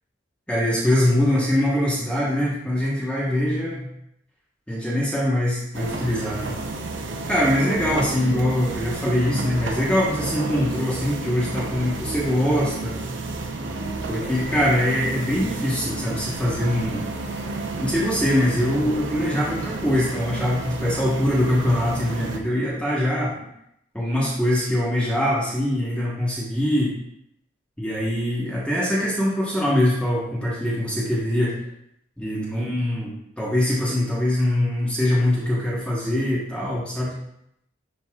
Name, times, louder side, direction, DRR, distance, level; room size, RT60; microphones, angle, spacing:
voice 1, 0.5-3.9 4.7-6.6 7.2-13.0 14.1-17.0 17.4-23.3 23.9-26.9 27.8-31.6 32.2-33.1 33.4-37.1, left 1 dB, 5° left, -7 dB, 1.1 m, -23 dB
sound 1, 5.7-22.4, right 2 dB, 65° right, 0.7 m, -31 dB
10.5 x 4.0 x 2.4 m, 0.77 s
head